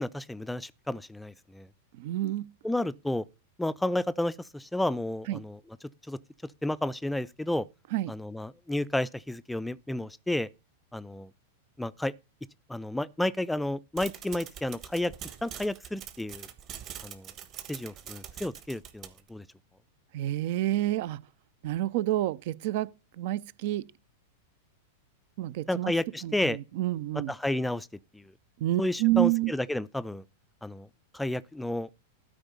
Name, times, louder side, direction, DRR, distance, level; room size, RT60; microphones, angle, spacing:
voice 1, 0.0-1.7 2.6-3.2 3.6-5.6 6.1-6.2 6.6-7.7 8.1-10.5 10.9-11.3 11.8-12.1 12.7-15.1 15.4-16.5 17.0-17.3 17.7-19.4 25.7-26.6 27.1-27.9 28.1-28.3 28.8-30.2 30.6-30.9 31.1-31.9, left 1 dB, 5° left, 0.4 m, -31 dB
voice 2, 2.0-2.5 5.3-5.4 7.9-8.1 20.1-21.2 21.6-23.9 25.4-25.9 26.2-27.3 28.6-29.5, right 15 dB, 55° right, 0.5 m, -29 dB
sound 1, 14.0-19.3, right 9 dB, 35° right, 1.3 m, -44 dB
12.5 x 4.9 x 5.4 m
figure-of-eight pair, 95°, 0 cm